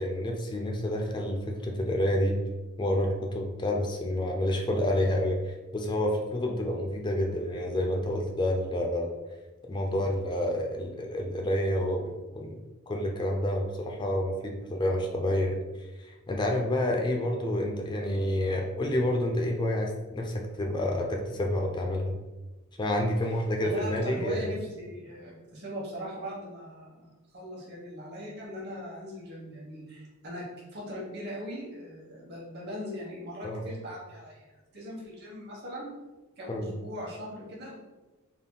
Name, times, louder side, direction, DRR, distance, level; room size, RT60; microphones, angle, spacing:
voice 1, 0.0-2.4 2.8-9.2 9.7-12.5 12.9-15.6 16.3-22.2 22.8-24.4 33.4-33.6 36.5-36.7, left 1 dB, 20° left, 1 dB, 0.4 m, -29 dB
voice 2, 23.3-30.5 30.7-34.5 34.7-35.9 36.4-37.8, equal, 50° right, -4 dB, 1.1 m, -40 dB
3.6 x 2.2 x 3.8 m, 1.1 s
head